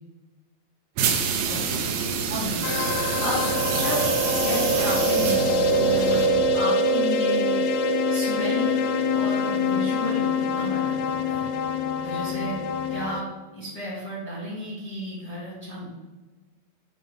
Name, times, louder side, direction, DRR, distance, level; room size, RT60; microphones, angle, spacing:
sound 1, 1.0-6.6, right 6 dB, 85° right, 2.1 m, -27 dB
voice 1, 1.5-1.8 2.3-2.6 3.2-3.5 3.7-4.0 4.3-7.6 8.1-11.5 12.0-15.9, equal, 15° left, -6 dB, 0.9 m, -32 dB
sound 2, 2.6-13.2, left 1 dB, 80° left, 1.8 m, -24 dB
7.3 x 2.6 x 5.1 m, 1.2 s
omnidirectional pair, 3.5 m